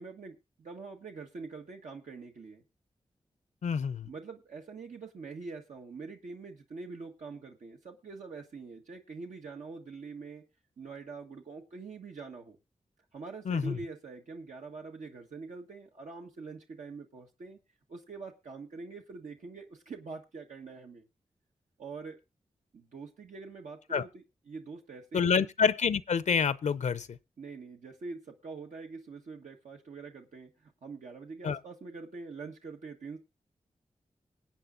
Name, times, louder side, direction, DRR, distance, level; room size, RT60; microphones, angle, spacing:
voice 1, 0.0-2.6 4.0-10.4 10.8-12.6 13.1-17.6 17.9-21.1 21.8-22.2 22.7-25.4 27.4-33.2, right 4 dB, 80° right, 1.4 m, -44 dB
voice 2, 3.6-4.1 13.5-13.8 23.9-24.0 25.1-27.2 31.4-31.6, left 6 dB, 75° left, 0.6 m, -27 dB
22.5 x 8.6 x 2.6 m
cardioid pair, 45°, 12 cm